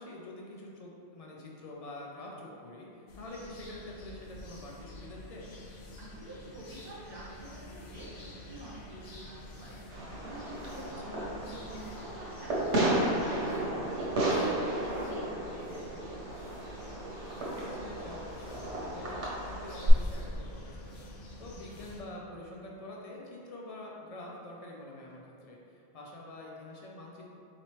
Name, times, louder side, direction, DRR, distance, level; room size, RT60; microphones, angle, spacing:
voice 1, 0.0-5.5 11.0-11.3 17.4-27.2, left 1 dB, 50° left, -2 dB, 0.4 m, -46 dB
sound 1, 3.1-22.0, left 1 dB, 75° left, 0.9 m, -48 dB
voice 2, 6.0-9.8 10.2-16.2, right 1 dB, 25° right, -7 dB, 0.8 m, -47 dB
Fireworks, 9.9-19.9, right 1 dB, 90° right, 1.1 m, -33 dB
4.3 x 3.0 x 3.0 m, 2.5 s
omnidirectional pair, 1.1 m